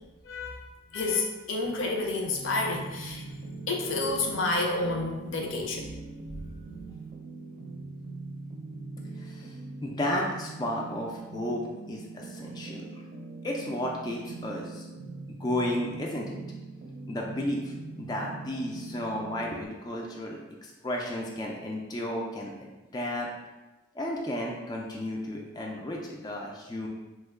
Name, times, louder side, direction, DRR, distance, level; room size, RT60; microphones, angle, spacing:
voice 1, 0.2-0.7 0.9-3.2 3.7-5.9, left 2 dB, 75° left, 1 dB, 0.6 m, -29 dB
sound 1, 2.3-19.7, right 3 dB, 45° right, 0.5 m, -42 dB
voice 2, 9.2-9.5 9.8-13.0 13.4-14.9 15.4-16.4 17.1-23.3 23.9-26.9, left 1 dB, 20° left, -1 dB, 0.3 m, -33 dB
3.0 x 2.1 x 3.5 m, 1.1 s
head